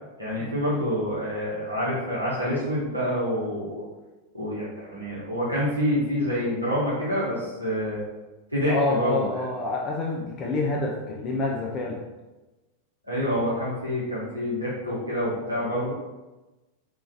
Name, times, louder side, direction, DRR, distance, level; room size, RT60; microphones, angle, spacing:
voice 1, 0.2-3.8 4.3-8.0 8.5-9.3 13.1-15.9, equal, 85° right, -8 dB, 0.8 m, -27 dB
voice 2, 8.7-12.0 13.3-13.4, left 2 dB, 30° left, -2 dB, 0.4 m, -28 dB
2.9 x 2.4 x 2.6 m, 1.1 s
figure-of-eight pair, 90°, 0 cm